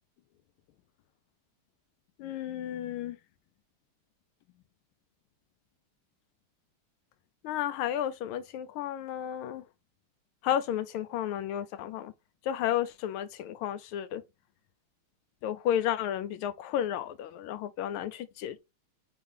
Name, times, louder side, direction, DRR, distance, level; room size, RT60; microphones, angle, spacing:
voice 1, 2.2-3.2 7.4-9.6 10.4-12.1 12.5-14.2 15.4-18.6, left 10 dB, 85° left, 1.5 m, -32 dB
3.9 x 3.5 x 3.3 m
omnidirectional pair, 2.3 m